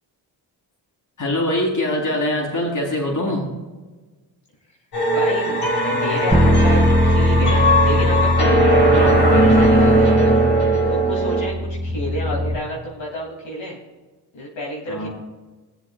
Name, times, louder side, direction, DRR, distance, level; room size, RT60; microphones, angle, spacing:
voice 1, 1.2-3.5 14.9-15.1, left 1 dB, 45° left, -1 dB, 3.9 m, -23 dB
sound 1, 4.9-11.5, right 1 dB, 65° left, 3.9 m, -18 dB
voice 2, 5.1-5.6 5.9-8.3 8.9-10.5 10.9-13.8 14.3-15.1, left 1 dB, 85° left, -4 dB, 3.1 m, -30 dB
Bass guitar, 6.3-12.6, left 1 dB, 5° left, 2.5 m, -20 dB
22.0 x 7.6 x 2.5 m, 1.2 s
cardioid pair, 70°, 44 cm